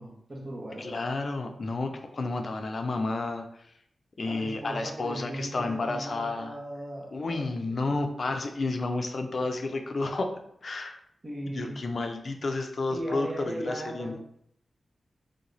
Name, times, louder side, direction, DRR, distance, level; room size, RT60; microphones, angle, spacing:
voice 1, 0.0-1.1 4.2-8.0 11.2-11.8 12.9-14.2, right 1 dB, 40° right, -1 dB, 1.2 m, -38 dB
voice 2, 0.8-3.5 4.2-6.5 7.1-10.3 10.6-11.0 11.5-14.2, left 3 dB, 60° left, 5 dB, 0.5 m, -31 dB
3.4 x 2.9 x 4.0 m, 0.69 s
cardioid pair, 50°, 0 cm